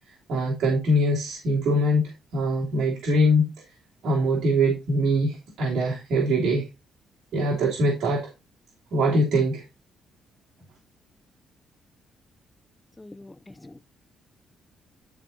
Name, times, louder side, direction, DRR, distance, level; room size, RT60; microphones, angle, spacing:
voice 1, 0.3-3.5 4.0-6.6 7.3-8.3 8.9-9.6, equal, 65° right, 3.2 m, -23 dB
voice 2, 13.0-13.8, left 2 dB, 15° left, 0.5 m, -45 dB
11.5 x 4.4 x 4.2 m
cardioid pair, 90°, 0 cm